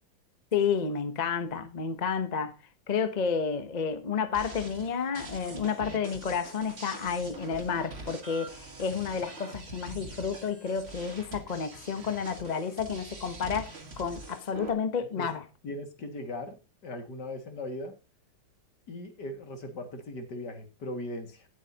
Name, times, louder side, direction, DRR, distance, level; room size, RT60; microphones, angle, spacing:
voice 1, 0.5-2.5 2.9-13.7 14.0-15.4, left 6 dB, 35° left, 0.7 m, -31 dB
sound 1, 4.3-14.7, right 3 dB, 35° right, 2.0 m, -44 dB
voice 2, 15.6-17.9 18.9-21.5, left 1 dB, 65° left, 2.6 m, -39 dB
18.0 x 7.8 x 2.9 m
omnidirectional pair, 2.0 m